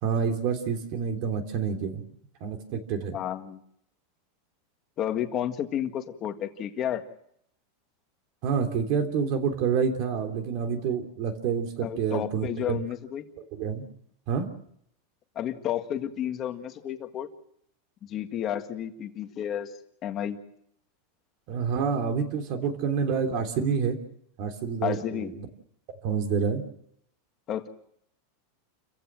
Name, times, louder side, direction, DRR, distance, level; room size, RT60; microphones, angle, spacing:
voice 1, 0.0-2.0 2.4-3.2 8.4-12.8 13.5-13.9 14.3-14.5 21.5-24.0 24.4-25.5 26.0-26.6, right 6 dB, 45° right, 6 dB, 3.2 m, -28 dB
voice 2, 3.1-3.6 5.0-7.0 11.8-13.3 15.4-17.3 18.1-19.7 20.0-20.4 24.8-25.3 27.5-27.7, left 10 dB, 30° left, 6 dB, 1.8 m, -31 dB
29.0 x 15.5 x 7.7 m, 0.71 s
supercardioid pair, 165°, 0 cm